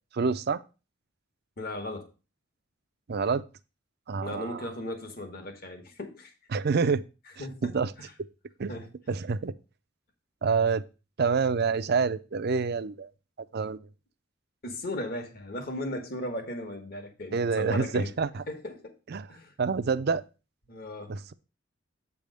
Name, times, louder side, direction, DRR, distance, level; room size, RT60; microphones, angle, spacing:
voice 1, 0.1-0.6 3.1-3.4 4.1-4.6 6.5-7.0 7.6-7.9 8.6-8.7 9.1-9.5 10.4-10.8 11.2-13.1 13.5-13.8 17.3-18.4 19.1-19.3 19.6-20.2 21.1-21.3, right 5 dB, 50° right, 0.4 m, -27 dB
voice 2, 1.6-2.1 4.2-6.3 7.4-8.1 8.7-8.9 14.6-18.1 18.5-19.0 19.3-19.5 20.7-21.1, left 1 dB, 45° left, 1.4 m, -37 dB
8.2 x 3.5 x 6.4 m
head